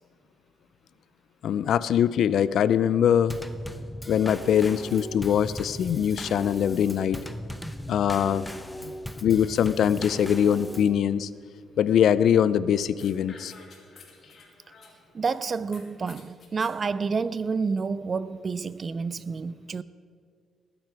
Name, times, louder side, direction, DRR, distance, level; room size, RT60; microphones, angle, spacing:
voice 1, 1.4-3.4 4.1-7.2 7.9-8.5 8.8-8.9 9.2-11.3 11.8-13.5, left 9 dB, 70° left, 0.4 m, -22 dB
Drum kit / Snare drum / Bass drum, 3.3-11.0, left 1 dB, 10° left, 0.8 m, -38 dB
sound 1, 13.0-15.4 15.7-16.8, left 4 dB, 55° left, 2.4 m, -51 dB
voice 2, 15.1-19.8, right 5 dB, 40° right, 0.5 m, -29 dB
20.0 x 9.2 x 4.7 m
cardioid pair, 90°, 0 cm